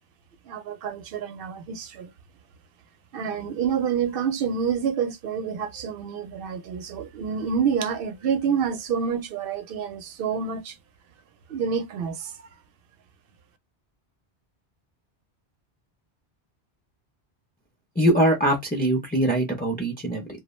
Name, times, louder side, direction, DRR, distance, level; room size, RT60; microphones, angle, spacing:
voice 1, 0.5-2.1 3.1-10.8 11.5-12.5, right 7 dB, 65° right, 0.7 m, -28 dB
voice 2, 18.0-20.3, right 1 dB, 15° left, 0.4 m, -22 dB
2.3 x 2.0 x 3.0 m
omnidirectional pair, 1.1 m